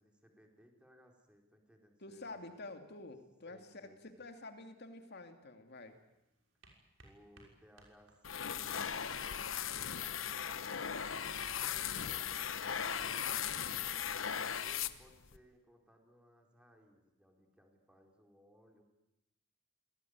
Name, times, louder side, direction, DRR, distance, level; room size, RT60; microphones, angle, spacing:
voice 1, 0.0-2.5 3.5-4.3 7.0-13.3 14.0-18.8, equal, 5° right, 2 dB, 4.5 m, -64 dB
voice 2, 2.0-6.0, left 2 dB, 55° left, 6 dB, 2.7 m, -49 dB
sound 1, 5.7-15.6, right 2 dB, 75° right, 6.1 m, -67 dB
sound 2, 8.2-15.4, left 8 dB, 80° left, 1.1 m, -38 dB
26.0 x 18.5 x 9.7 m, 0.94 s
head